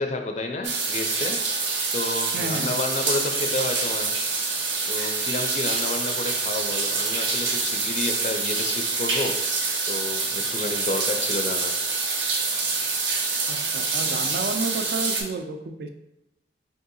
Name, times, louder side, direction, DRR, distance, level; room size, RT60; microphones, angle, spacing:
voice 1, 0.0-1.7 1.9-4.1 4.9-11.8, left 2 dB, 40° left, 4 dB, 0.4 m, -31 dB
sound 1, 0.6-15.2, right 4 dB, 90° right, 0.7 m, -26 dB
voice 2, 2.3-2.8 13.5-15.9, right 3 dB, 60° right, 7 dB, 0.4 m, -31 dB
4.6 x 2.7 x 2.6 m, 0.92 s
head